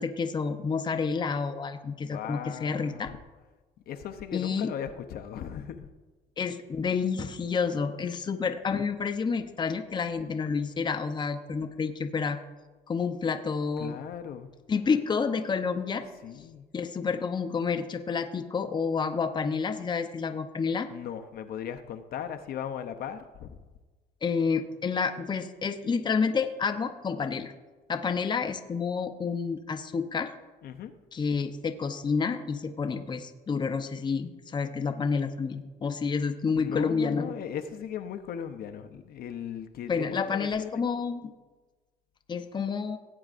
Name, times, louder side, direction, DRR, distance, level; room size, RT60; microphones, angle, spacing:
voice 1, 0.0-3.1 4.3-4.7 6.4-12.4 12.9-14.0 14.7-16.0 16.7-20.9 24.2-27.5 27.9-30.3 31.1-37.3 39.9-41.2 42.3-43.0, left 5 dB, 25° left, 6 dB, 0.7 m, -29 dB
voice 2, 2.1-3.2 3.9-5.9 13.8-14.5 16.2-16.6 20.9-23.6 30.6-30.9 36.5-40.8, left 9 dB, 65° left, 7 dB, 0.7 m, -38 dB
17.0 x 8.5 x 2.5 m, 1.3 s
cardioid pair, 110°, 17 cm